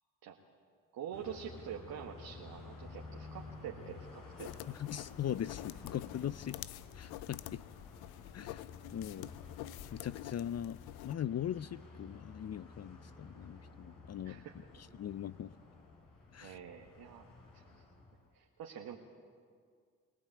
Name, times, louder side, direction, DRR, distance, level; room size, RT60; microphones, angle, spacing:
voice 1, 0.9-4.7 14.2-14.6 16.4-17.3 17.5-17.8 18.3-19.0, right 8 dB, 75° right, 0 dB, 1.8 m, -46 dB
Car passing by, 1.1-18.3, left 3 dB, 60° left, 5.3 m, -53 dB
sound 1, 4.4-11.1, left 15 dB, 80° left, 0.7 m, -47 dB
voice 2, 4.7-6.6 6.9-7.6 8.3-9.3 9.9-10.8 11.0-14.4 15.0-15.5 16.3-16.6, left 10 dB, 45° left, 16 dB, 0.6 m, -40 dB
23.0 x 18.5 x 8.7 m, 2.1 s
hypercardioid pair, 45°, 36 cm